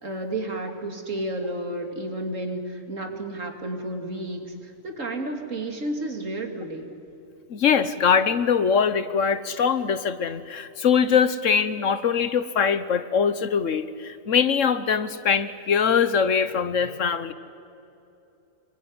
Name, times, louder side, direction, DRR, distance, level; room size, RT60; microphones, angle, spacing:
voice 1, 0.0-6.9, right 1 dB, 70° right, 4 dB, 3.3 m, -31 dB
voice 2, 7.5-17.3, left 6 dB, 70° left, 13 dB, 1.4 m, -22 dB
26.0 x 23.0 x 9.9 m, 2.8 s
omnidirectional pair, 1.4 m